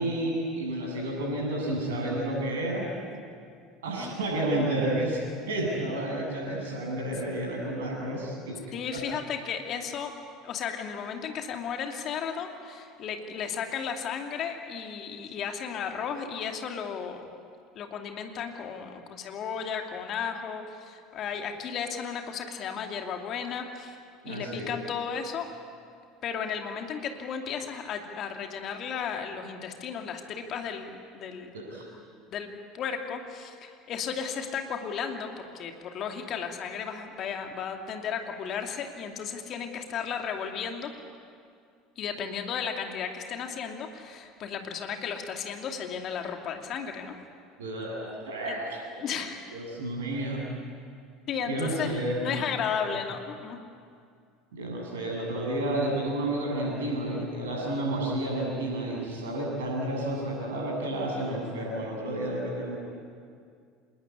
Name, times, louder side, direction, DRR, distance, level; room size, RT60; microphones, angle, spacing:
voice 1, 0.0-2.9 3.8-8.6 8.9-9.0 24.2-24.7 31.5-31.9 47.6-49.1 49.5-50.4 51.5-52.4 52.7-52.8 54.5-62.8, right 1 dB, 70° right, -1 dB, 7.7 m, -31 dB
voice 2, 8.7-10.1 10.4-17.2 17.7-24.0 24.2-25.5 26.2-31.5 32.3-40.9 42.0-47.2 48.4-48.6 49.0-49.4 51.3-53.6, left 7 dB, 45° left, 4 dB, 2.7 m, -34 dB
27.0 x 20.0 x 9.8 m, 2.2 s
figure-of-eight pair, 70°, 0 cm